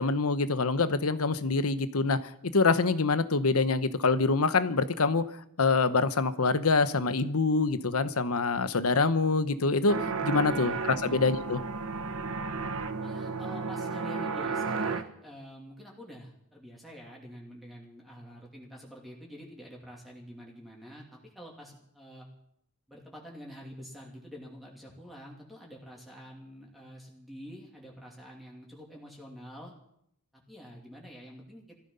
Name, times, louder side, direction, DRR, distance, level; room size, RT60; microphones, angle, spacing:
voice 1, 0.0-2.2 2.5-5.3 5.6-10.0 10.2-11.6, left 4 dB, 90° left, 13 dB, 0.9 m, -25 dB
sound 1, 9.9-15.0, right 4 dB, 70° right, 1.1 m, -33 dB
voice 2, 10.5-11.2 13.0-22.3 22.9-29.7 30.3-31.7, equal, ahead, -2 dB, 2.7 m, -47 dB
17.5 x 14.5 x 5.5 m, 0.74 s
head